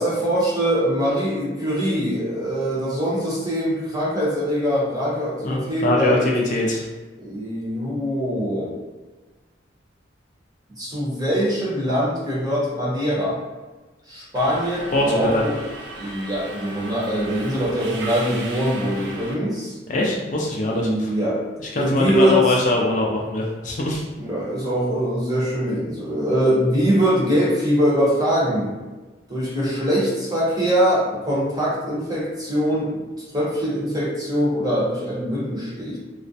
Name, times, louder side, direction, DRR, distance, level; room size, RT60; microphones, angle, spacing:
voice 1, 0.0-6.3 7.2-8.7 10.8-13.4 14.1-15.6 15.9-19.8 20.7-21.4 21.8-22.5 24.2-28.7 29.3-33.0 33.3-36.0, equal, 20° right, -7 dB, 0.8 m, -22 dB
voice 2, 5.4-6.9 14.9-15.5 19.9-21.1 21.7-24.0, left 1 dB, 45° left, -2 dB, 0.4 m, -22 dB
Subway metro underground, 14.3-19.3, right 2 dB, 85° right, 0.4 m, -36 dB
2.3 x 2.0 x 2.6 m, 1.2 s
head